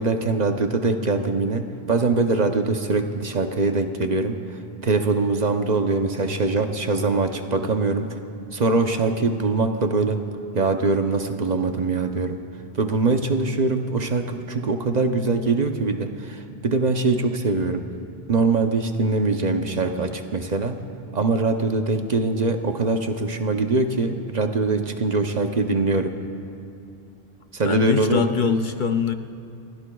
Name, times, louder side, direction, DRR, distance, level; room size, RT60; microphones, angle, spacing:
voice 1, 0.0-8.2 8.5-10.2 10.5-12.4 12.8-17.8 18.3-20.8 21.1-26.1 27.5-28.3, right 3 dB, 45° right, 6 dB, 0.8 m, -23 dB
voice 2, 27.6-29.1, left 6 dB, 55° left, 7 dB, 0.7 m, -23 dB
30.0 x 16.5 x 2.3 m, 2.6 s
omnidirectional pair, 1.1 m